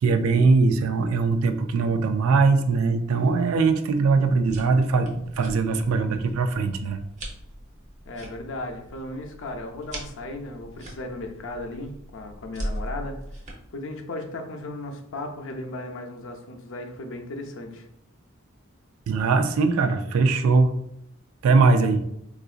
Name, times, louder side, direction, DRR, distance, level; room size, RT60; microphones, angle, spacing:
voice 1, 0.0-7.0 19.1-20.8 21.4-22.0, right 4 dB, 80° right, 8 dB, 0.4 m, -21 dB
sound 1, 4.2-13.5, right 1 dB, 35° right, 0.8 m, -40 dB
voice 2, 8.1-13.2 13.7-17.9, left 2 dB, 65° left, 3 dB, 0.5 m, -36 dB
3.8 x 2.5 x 2.4 m, 0.76 s
head